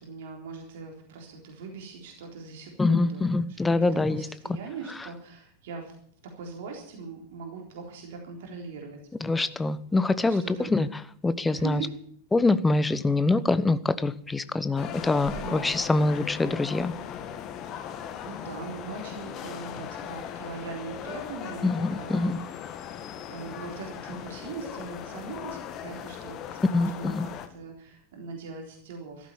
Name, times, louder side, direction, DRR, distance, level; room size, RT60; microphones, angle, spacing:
voice 1, 0.0-3.9 4.2-6.0 6.4-9.0 10.3-10.7 11.5-12.0 14.4-14.6 15.3-15.6 17.6-18.0 18.3-22.3 22.8-23.0 23.3-29.3, right 5 dB, 55° right, 1 dB, 3.8 m, -41 dB
voice 2, 2.8-4.3 9.2-11.8 12.3-16.9 21.6-22.4 26.7-27.3, left 2 dB, 10° left, 15 dB, 0.9 m, -25 dB
sound 1, 14.8-27.5, left 9 dB, 35° left, 1.6 m, -38 dB
14.5 x 12.5 x 7.2 m, 0.63 s
figure-of-eight pair, 90°, 0 cm